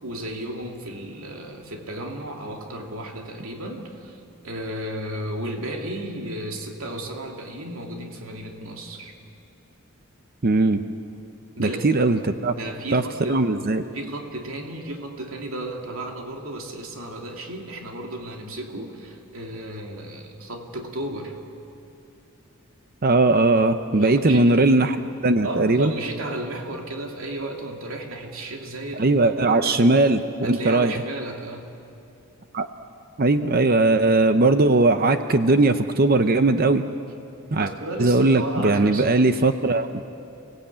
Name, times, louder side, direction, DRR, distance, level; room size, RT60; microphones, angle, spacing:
voice 1, 0.0-9.1 11.6-12.0 12.5-13.4 13.9-21.4 23.9-24.6 25.4-30.1 30.4-31.7 37.5-39.4, right 1 dB, 70° right, 2 dB, 2.8 m, -34 dB
voice 2, 10.4-10.8 11.6-12.6 12.9-13.0 13.3-13.8 23.0-25.0 25.2-25.9 29.0-30.9 32.5-32.7 33.2-36.8 37.5-37.7 38.0-39.9, right 2 dB, 45° right, 9 dB, 0.7 m, -19 dB
29.5 x 18.0 x 8.6 m, 2.7 s
head